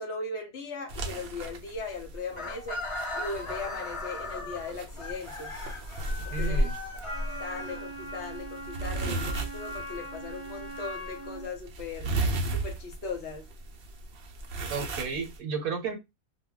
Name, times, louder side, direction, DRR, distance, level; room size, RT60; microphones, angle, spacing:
voice 1, 0.0-2.8 3.1-5.6 6.3-6.7 7.4-12.1 12.5-13.5, left 3 dB, 60° left, 0.8 m, -38 dB
sound 1, 0.9-15.4, right 2 dB, 60° right, 0.7 m, -35 dB
Chicken rooster, 2.3-8.3, left 2 dB, 40° left, 0.4 m, -38 dB
voice 2, 6.3-6.7 14.7-16.0, right 5 dB, 80° right, 1.2 m, -32 dB
Wind instrument woodwind instrument, 7.0-11.5, right 1 dB, 25° right, 0.7 m, -40 dB
2.2 x 2.2 x 3.6 m
omnidirectional pair, 1.5 m